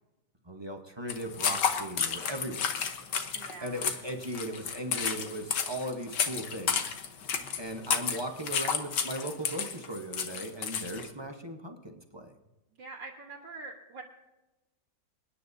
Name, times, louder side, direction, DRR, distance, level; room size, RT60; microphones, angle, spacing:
voice 1, 0.4-2.7 3.6-6.9 7.6-12.3, right 1 dB, 20° right, 4 dB, 0.8 m, -38 dB
sound 1, 1.1-11.1, left 7 dB, 75° left, 1.7 m, -32 dB
voice 2, 3.3-3.9 12.8-14.0, right 3 dB, 85° right, -4 dB, 2.0 m, -44 dB
27.0 x 9.9 x 2.7 m, 1.0 s
omnidirectional pair, 1.9 m